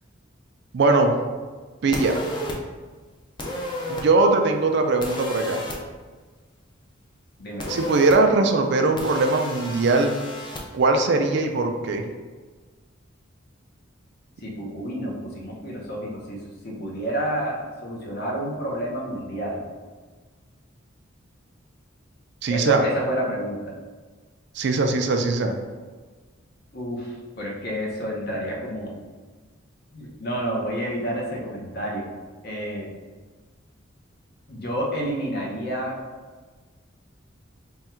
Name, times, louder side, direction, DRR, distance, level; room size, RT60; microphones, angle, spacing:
voice 1, 0.7-1.1 1.8-2.2 3.9-5.6 7.7-10.2 10.7-12.0 22.4-22.8 24.6-25.5, right 3 dB, 60° right, 5 dB, 0.4 m, -20 dB
sound 1, 1.9-2.6 3.4-4.0 5.0-5.8 7.6-8.2 9.0-10.6, left 1 dB, 25° left, 0.5 m, -32 dB
voice 2, 7.4-7.7 14.4-19.6 22.5-23.8 26.7-28.9 29.9-32.1 32.4-32.9 34.5-36.0, equal, 50° left, -2 dB, 0.8 m, -29 dB
3.5 x 2.2 x 4.3 m, 1.4 s
head